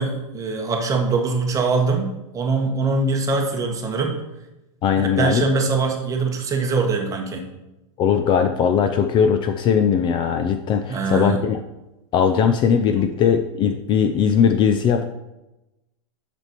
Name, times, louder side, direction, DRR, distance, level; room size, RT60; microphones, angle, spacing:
voice 1, 0.0-4.2 5.0-7.5 10.9-11.4 13.0-13.1, right 4 dB, 20° right, 2 dB, 1.2 m, -23 dB
voice 2, 4.8-5.4 8.0-11.6 12.1-15.1, left 7 dB, 30° left, 7 dB, 0.4 m, -19 dB
6.5 x 6.0 x 4.5 m, 0.96 s
hypercardioid pair, 130°, 17 cm